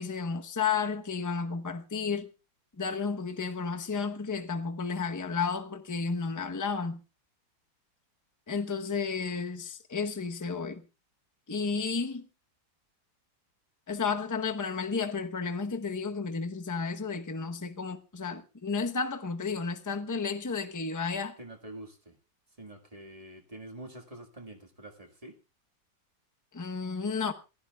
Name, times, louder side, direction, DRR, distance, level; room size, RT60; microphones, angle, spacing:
voice 1, 0.0-2.3 2.8-7.0 8.5-10.8 11.5-12.2 13.9-21.3 26.5-27.3, left 5 dB, 20° left, 0.4 m, -32 dB
voice 2, 21.4-22.2 22.6-25.4, right 1 dB, 20° right, 1.7 m, -46 dB
27.0 x 15.0 x 2.3 m
omnidirectional pair, 2.0 m